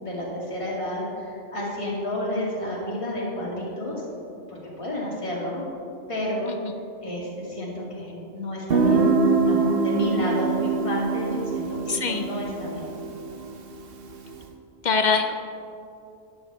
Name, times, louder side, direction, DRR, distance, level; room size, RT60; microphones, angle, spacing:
voice 1, 0.0-4.0 4.5-5.6 6.1-6.5 7.0-9.1 9.4-13.0, left 1 dB, 25° left, -5 dB, 2.3 m, -31 dB
Guitar, 8.7-14.3, right 4 dB, 55° right, 1.0 m, -24 dB
voice 2, 11.9-12.2 14.8-15.3, left 5 dB, 50° left, 6 dB, 0.6 m, -22 dB
12.5 x 10.5 x 3.4 m, 2.7 s
omnidirectional pair, 1.3 m